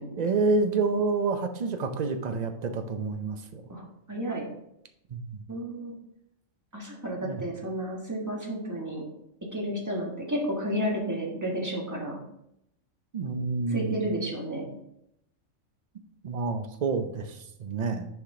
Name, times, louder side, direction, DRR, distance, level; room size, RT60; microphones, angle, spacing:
voice 1, 0.2-3.6 5.1-5.4 7.2-7.4 13.1-14.0 16.2-18.1, right 4 dB, 50° right, 7 dB, 0.5 m, -28 dB
voice 2, 3.7-4.5 5.5-5.9 6.7-9.0 9.5-12.2 13.7-14.7, equal, 15° right, -2 dB, 1.3 m, -32 dB
6.4 x 5.0 x 3.7 m, 0.80 s
omnidirectional pair, 1.4 m